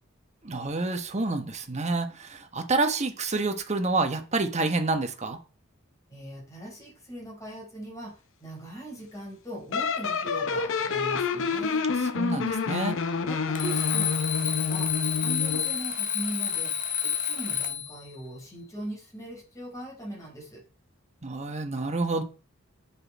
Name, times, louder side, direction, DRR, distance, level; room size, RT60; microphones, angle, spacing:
voice 1, 0.4-5.4 12.1-13.0 21.2-22.2, right 3 dB, 35° right, 6 dB, 1.1 m, -28 dB
voice 2, 6.1-11.9 13.3-14.9 15.2-16.7 17.0-20.6, right 1 dB, 15° left, -3 dB, 4.4 m, -40 dB
sound 1, 9.7-15.7, left 5 dB, 65° left, 0.8 m, -28 dB
Alarm, 13.5-18.0, left 9 dB, 40° left, 1.5 m, -29 dB
9.5 x 6.1 x 4.1 m, 0.36 s
head